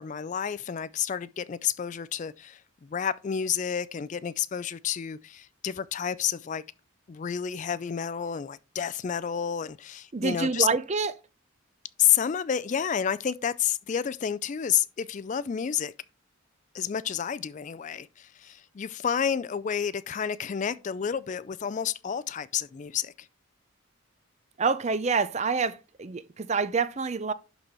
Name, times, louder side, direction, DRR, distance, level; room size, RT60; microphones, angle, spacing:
voice 1, 0.0-6.6 7.1-10.7 12.0-15.9 16.7-23.3, left 8 dB, 35° left, 0.3 m, -30 dB
voice 2, 10.1-11.1 24.6-27.3, right 5 dB, 35° right, 0.5 m, -27 dB
11.5 x 4.1 x 4.4 m
head